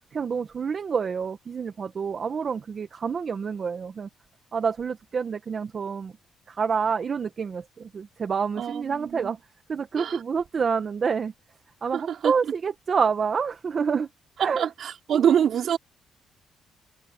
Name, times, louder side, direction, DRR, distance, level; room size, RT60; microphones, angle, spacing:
voice 1, 0.1-4.1 4.5-6.1 6.5-9.4 9.7-11.3 11.8-14.1 14.4-14.7 15.1-15.2, right 6 dB, 45° right, 1.1 m, -28 dB
voice 2, 8.6-9.3 10.0-10.2 11.9-12.3 14.4-15.8, right 9 dB, 70° right, 2.9 m, -25 dB
cardioid pair, 100°, 0 cm